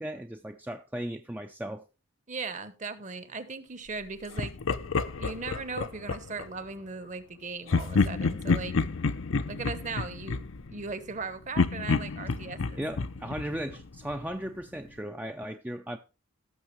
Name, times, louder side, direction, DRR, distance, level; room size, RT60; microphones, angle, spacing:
voice 1, 0.0-1.8 12.8-16.0, right 1 dB, 10° right, 0.4 m, -36 dB
voice 2, 2.3-4.5 5.2-8.7 9.5-10.4 10.7-12.8, right 4 dB, 35° right, 0.9 m, -38 dB
Laughter, 4.4-6.5 7.7-11.2 11.6-14.3, left 4 dB, 70° left, 0.6 m, -29 dB
17.0 x 6.5 x 3.1 m
head